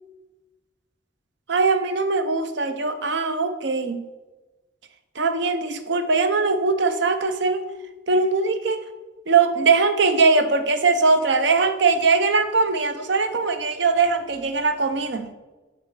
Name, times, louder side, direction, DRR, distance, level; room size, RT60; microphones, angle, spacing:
voice 1, 1.5-4.0 5.2-7.6 8.1-8.8 9.3-15.3, right 4 dB, 60° right, 9 dB, 0.6 m, -21 dB
6.8 x 4.1 x 6.5 m, 1.2 s
head